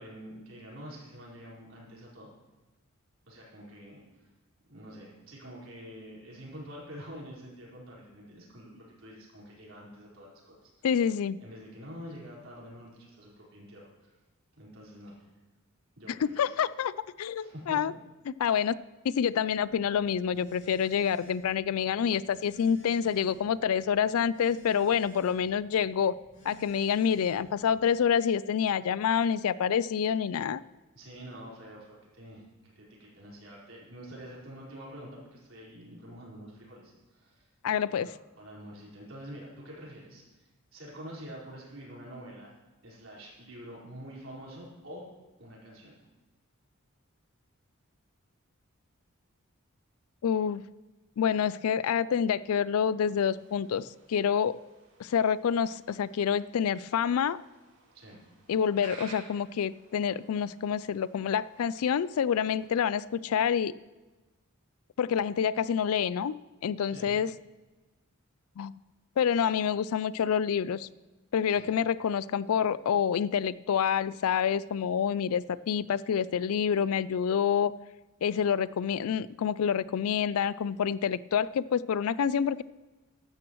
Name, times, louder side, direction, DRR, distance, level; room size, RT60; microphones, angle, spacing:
voice 1, 0.0-2.3 3.3-4.3 4.7-10.9 11.4-14.1 14.5-15.2 16.0-16.4 17.4-17.8 30.9-37.5 38.0-42.5 42.8-45.1 45.4-46.1 57.9-58.2 66.9-67.2 71.6-71.7, equal, 60° right, -5 dB, 4.5 m, -47 dB
voice 2, 10.8-11.4 16.1-17.9 18.4-18.7 19.0-26.2 26.4-30.6 37.6-38.1 50.2-50.6 51.2-54.6 55.0-57.4 58.5-63.7 65.0-67.3 68.6-68.8 69.2-70.9 71.3-77.7 78.2-82.6, left 7 dB, 75° left, 18 dB, 0.3 m, -27 dB
Telephone, 19.5-28.0, right 3 dB, 30° left, 3.2 m, -55 dB
sound 1, 53.1-62.7, right 3 dB, 90° right, 4.2 m, -55 dB
15.0 x 12.0 x 3.1 m, 1.2 s
head